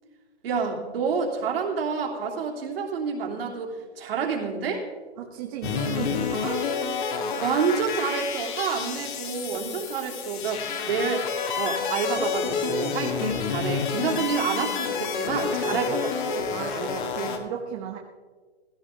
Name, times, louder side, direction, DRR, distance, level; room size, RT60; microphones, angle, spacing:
voice 1, 0.4-4.8 7.4-11.3 11.6-16.4 16.7-16.9, right 5 dB, 60° right, 0 dB, 2.9 m, -28 dB
voice 2, 5.2-6.7 13.1-13.2 14.1-14.2 15.7-15.8 16.5-18.0, right 8 dB, 30° right, 1 dB, 1.2 m, -35 dB
sound 1, 5.6-17.4, left 6 dB, 45° left, 1.9 m, -29 dB
15.5 x 14.0 x 3.6 m, 1.5 s
hypercardioid pair, 140°, 34 cm